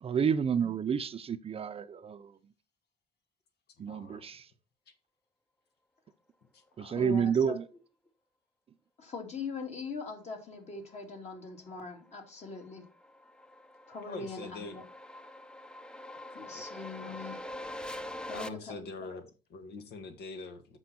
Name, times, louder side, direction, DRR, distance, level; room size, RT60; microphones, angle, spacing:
voice 1, 0.0-2.4 3.8-4.5 6.8-7.7, right 7 dB, 35° right, 0.6 m, -30 dB
voice 2, 3.8-4.3 6.5-7.1 14.1-14.8 16.4-16.6 17.0-17.2 18.3-20.8, left 3 dB, 75° left, 1.5 m, -44 dB
voice 3, 7.0-7.6 9.0-12.9 13.9-14.8 16.3-17.4 18.3-19.2, left 4 dB, 40° left, 2.8 m, -42 dB
sound 1, 11.9-18.5, left 1 dB, 5° left, 0.5 m, -44 dB
7.8 x 6.2 x 4.3 m
cardioid pair, 110°, 17 cm